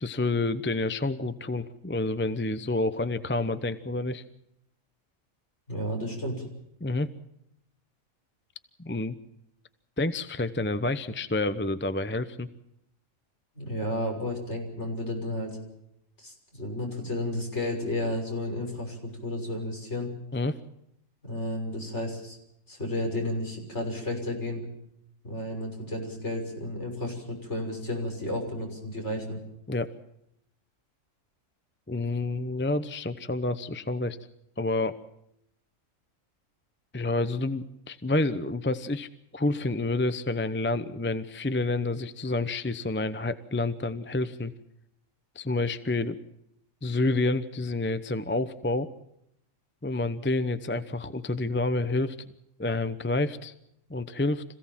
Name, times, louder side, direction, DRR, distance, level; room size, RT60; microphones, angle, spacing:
voice 1, 0.0-4.2 6.8-7.1 8.8-9.2 10.0-12.5 20.3-20.6 29.7-29.9 31.9-34.2 34.6-35.0 36.9-39.1 39.3-44.5 45.3-46.2 46.8-48.9 49.8-52.2 52.6-53.5 53.9-54.4, left 2 dB, 10° left, 11 dB, 0.7 m, -28 dB
voice 2, 5.7-6.4 13.5-15.6 16.2-20.1 21.2-22.4 22.7-24.6 25.2-29.4, left 1 dB, 55° left, 1 dB, 6.6 m, -32 dB
26.0 x 16.5 x 7.4 m, 0.80 s
omnidirectional pair, 1.4 m